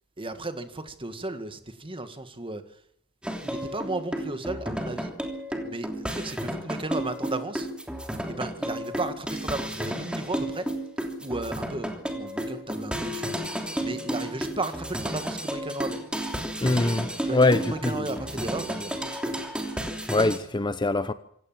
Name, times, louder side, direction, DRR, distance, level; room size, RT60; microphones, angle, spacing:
voice 1, 0.2-2.8 3.4-5.1 5.6-7.7 8.3-10.7 11.2-13.3 13.8-16.0 17.2-19.4, right 2 dB, 25° right, 1.9 m, -34 dB
sound 1, 3.2-20.4, right 1 dB, 5° right, 3.1 m, -32 dB
voice 2, 16.6-18.2 20.1-21.1, left 2 dB, 20° left, 0.8 m, -24 dB
26.5 x 16.5 x 7.5 m
head